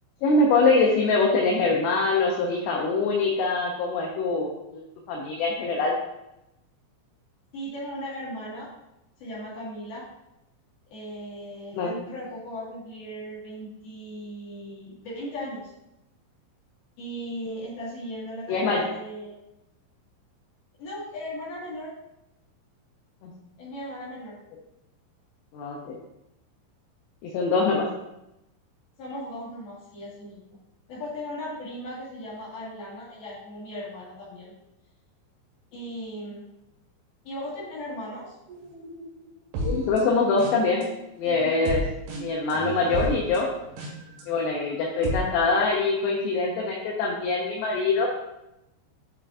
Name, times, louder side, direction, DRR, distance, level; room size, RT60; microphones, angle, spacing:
voice 1, 0.2-4.8 5.1-5.9 11.7-11.9 18.5-18.8 23.2-23.3 25.5-26.0 27.2-27.9 39.6-40.8 41.2-41.9 42.2-43.5 44.3-48.1, left 3 dB, 80° left, -2 dB, 2.5 m, -24 dB
voice 2, 7.5-8.7 9.2-10.0 10.9-15.7 17.0-19.4 20.8-21.9 23.6-24.4 29.0-30.6 30.9-34.5 35.7-36.4 37.2-38.4, equal, 60° left, -7 dB, 3.2 m, -37 dB
sound 1, 38.5-40.8 41.2-44.2 44.7-45.2, right 1 dB, 70° right, 4.0 m, -33 dB
8.3 x 5.5 x 2.5 m, 0.91 s
omnidirectional pair, 5.7 m